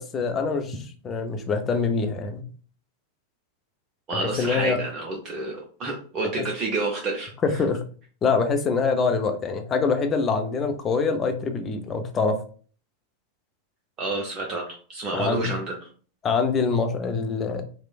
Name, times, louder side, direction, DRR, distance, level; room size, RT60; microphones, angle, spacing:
voice 1, 0.0-2.4 4.1-4.8 7.4-7.8 8.2-12.4 15.1-15.5 16.2-17.6, left 4 dB, 25° left, 6 dB, 0.4 m, -25 dB
voice 2, 4.1-7.3 14.0-14.6 14.9-15.8, right 3 dB, 30° right, -1 dB, 0.5 m, -29 dB
3.0 x 2.0 x 2.3 m, 0.42 s
figure-of-eight pair, 90°, 0 cm